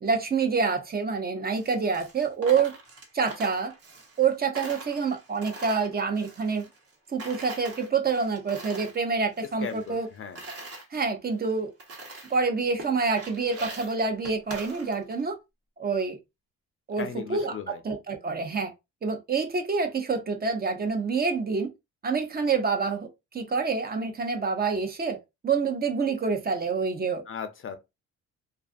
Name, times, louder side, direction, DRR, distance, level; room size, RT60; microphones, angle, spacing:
voice 1, 0.0-2.7 3.1-3.7 4.2-6.6 7.1-10.1 10.9-11.7 12.3-15.4 15.8-16.2 16.9-17.5 17.8-18.7 19.0-21.7 22.0-23.1 23.3-25.2 25.4-27.2, right 5 dB, 30° right, 0.6 m, -27 dB
Coin (dropping), 1.5-4.3 4.5-6.9 7.2-9.0 9.3-10.8 11.4-11.5 11.8-12.4 12.8-15.2, right 1 dB, 50° right, 1.0 m, -42 dB
voice 2, 9.4-10.4 17.0-17.8 27.3-27.8, left 7 dB, 45° left, 0.5 m, -37 dB
2.4 x 2.4 x 2.4 m
cardioid pair, 90°, 30 cm